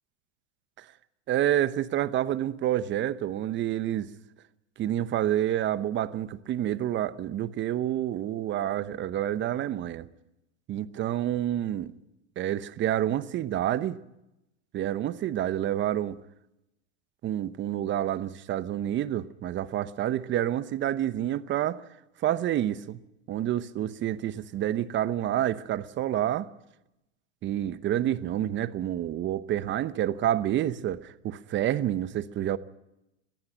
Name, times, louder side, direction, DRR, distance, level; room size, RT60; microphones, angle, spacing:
voice 1, 1.3-4.1 4.8-10.1 10.7-11.9 12.4-14.0 14.7-16.2 17.2-21.8 22.2-23.0 23.3-26.5 27.4-32.6, right 12 dB, 30° right, 0.9 m, -28 dB
21.0 x 15.0 x 9.1 m
hypercardioid pair, 110°, 37 cm